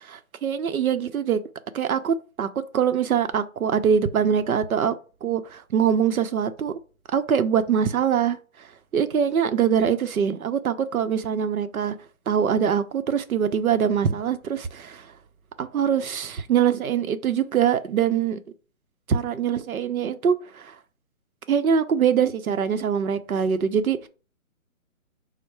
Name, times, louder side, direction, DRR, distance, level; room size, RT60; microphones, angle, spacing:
voice 1, 0.1-1.4 1.7-4.9 5.2-6.8 7.1-8.7 8.9-11.9 12.3-15.1 15.6-18.4 19.1-20.7 21.5-24.1, right 7 dB, 85° right, 0.7 m, -23 dB
5.3 x 2.1 x 4.6 m
hypercardioid pair, 175°, 42 cm